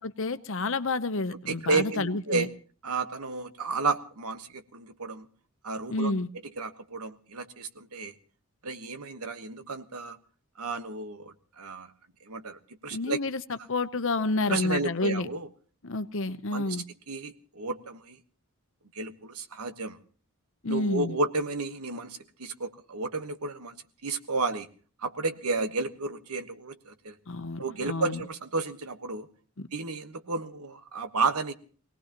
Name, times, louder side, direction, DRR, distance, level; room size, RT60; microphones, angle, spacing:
voice 1, 0.2-2.5 5.9-6.3 12.9-13.4 13.7-15.3 15.8-16.8 20.6-21.2 27.3-28.2 29.6-29.7, left 3 dB, 60° left, 0.9 m, -29 dB
voice 2, 1.5-2.5 2.8-5.3 5.6-6.1 6.6-8.1 8.6-10.2 10.6-11.9 12.3-13.2 14.5-15.5 16.5-18.2 18.9-20.0 20.7-23.7 24.0-24.7 25.0-27.1 27.6-29.3 29.7-31.5, right 3 dB, 85° right, 1.3 m, -32 dB
24.5 x 18.5 x 3.0 m
head